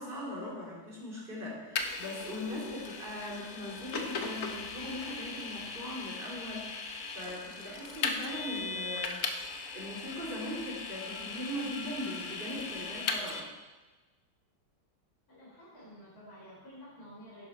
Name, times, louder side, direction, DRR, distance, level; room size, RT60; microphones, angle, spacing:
voice 1, 0.0-13.5, left 1 dB, 25° right, -4 dB, 3.2 m, -40 dB
Vehicle, 1.8-13.4, left 4 dB, 55° left, 1.2 m, -38 dB
voice 2, 15.3-17.5, equal, 30° left, -8 dB, 3.9 m, -51 dB
11.0 x 10.5 x 4.3 m, 1.3 s
omnidirectional pair, 2.2 m